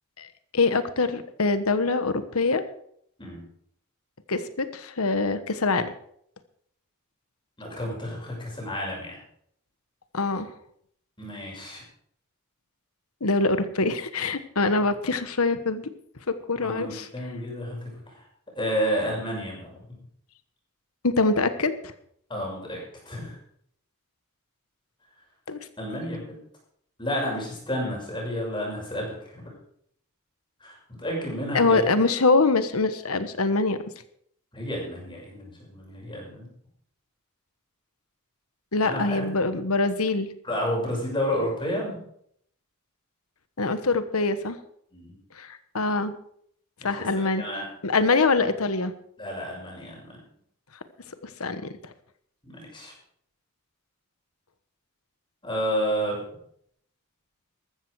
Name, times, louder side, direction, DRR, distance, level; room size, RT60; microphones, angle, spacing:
voice 1, 0.5-2.6 4.3-5.9 10.1-10.5 13.2-15.8 16.3-17.1 21.0-21.7 25.5-25.6 31.5-33.8 38.7-40.3 43.6-44.6 45.4-46.1 46.8-47.4 47.8-48.9 51.2-51.7, left 3 dB, 75° left, 11 dB, 1.3 m, -24 dB
voice 2, 7.6-9.2 11.2-11.8 16.6-17.9 18.6-19.8 22.3-22.8 23.0-23.4 25.8-26.2 27.0-29.5 30.6-31.9 34.5-36.5 38.8-39.2 40.4-42.0 44.9-45.1 46.8-47.7 49.2-50.1 52.4-52.9 55.4-56.3, equal, 20° left, -2 dB, 6.3 m, -31 dB
14.5 x 13.5 x 4.8 m, 0.68 s
head